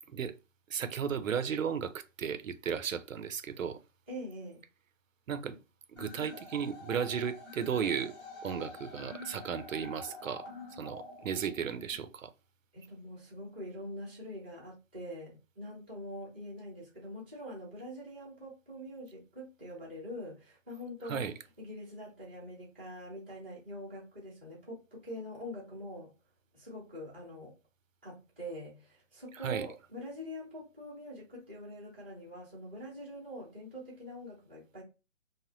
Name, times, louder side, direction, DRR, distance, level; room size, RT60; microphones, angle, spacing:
voice 1, 0.7-3.8 5.3-5.6 5.9-8.1 8.4-10.5 10.7-12.3 21.0-21.3 29.4-29.7, right 7 dB, 90° right, 0.6 m, -35 dB
voice 2, 4.1-4.6 12.7-21.3 21.6-26.1 26.5-27.6 28.0-34.8, equal, 10° right, 0.6 m, -44 dB
sound 1, 6.0-11.9, left 2 dB, 15° left, 1.0 m, -47 dB
3.3 x 2.0 x 2.6 m
hypercardioid pair, 165°, 38 cm